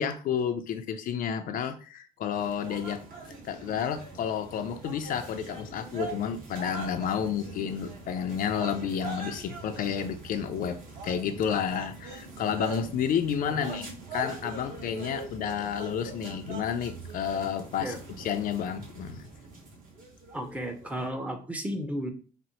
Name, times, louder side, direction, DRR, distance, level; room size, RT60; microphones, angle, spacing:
voice 1, 0.0-3.1 3.4-19.3, left 8 dB, 55° left, 0.4 m, -31 dB
sound 1, 2.3-21.1, right 3 dB, 55° right, 1.2 m, -42 dB
voice 2, 13.5-13.8 17.8-18.0 20.3-22.1, equal, 10° right, 0.6 m, -34 dB
4.1 x 2.0 x 2.8 m
cardioid pair, 110°, 17 cm